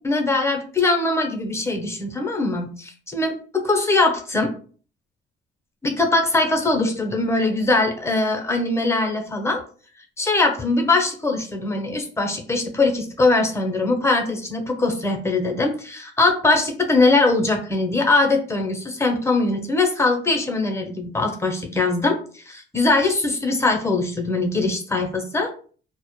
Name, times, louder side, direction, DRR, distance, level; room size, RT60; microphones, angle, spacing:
voice 1, 0.0-3.3 3.7-4.5 5.8-9.6 10.2-25.5, left 3 dB, 15° left, 3 dB, 0.7 m, -21 dB
2.1 x 2.0 x 3.0 m, 0.42 s
cardioid pair, 90°, 20 cm